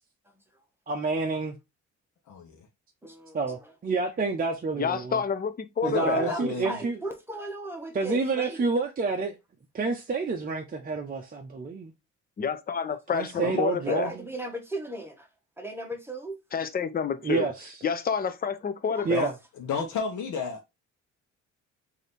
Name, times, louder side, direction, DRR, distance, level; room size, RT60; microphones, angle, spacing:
voice 1, 0.9-1.6 3.3-5.2 5.8-7.0 7.9-9.4 9.7-11.9 13.1-14.2 17.2-17.8 19.0-19.3, right 4 dB, 30° right, 0.6 m, -28 dB
voice 2, 2.3-2.6 5.8-6.8 13.3-13.6 19.1-19.3 19.6-20.6, left 6 dB, 75° left, 1.0 m, -32 dB
voice 3, 3.0-3.7 6.0-8.7 13.8-15.3 15.6-16.4 18.9-19.1, right 1 dB, 10° right, 1.1 m, -36 dB
voice 4, 4.8-6.2 12.4-14.1 16.5-17.5 17.8-19.3, left 6 dB, 30° left, 0.6 m, -28 dB
3.2 x 2.8 x 4.1 m
cardioid pair, 90°, 30 cm